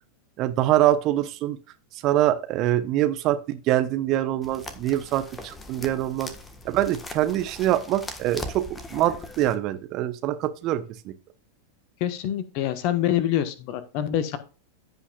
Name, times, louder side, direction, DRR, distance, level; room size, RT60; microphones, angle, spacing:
voice 1, 0.4-1.6 2.0-6.3 6.6-8.6 8.9-11.1, right 13 dB, 40° right, 9 dB, 1.1 m, -24 dB
sound 1, 4.4-9.5, left 2 dB, 15° left, 1.5 m, -40 dB
voice 2, 12.0-14.4, left 11 dB, 45° left, 11 dB, 1.4 m, -26 dB
15.5 x 5.7 x 2.5 m, 0.34 s
figure-of-eight pair, 90°, 0 cm